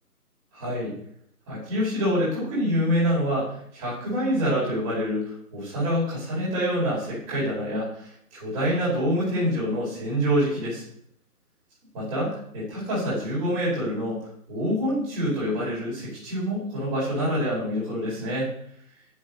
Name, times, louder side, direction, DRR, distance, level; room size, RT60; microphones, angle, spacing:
voice 1, 0.5-0.9 1.5-10.8 11.9-18.5, equal, 10° right, -8 dB, 4.6 m, -26 dB
8.0 x 7.4 x 5.4 m, 0.65 s
figure-of-eight pair, 165°, 46 cm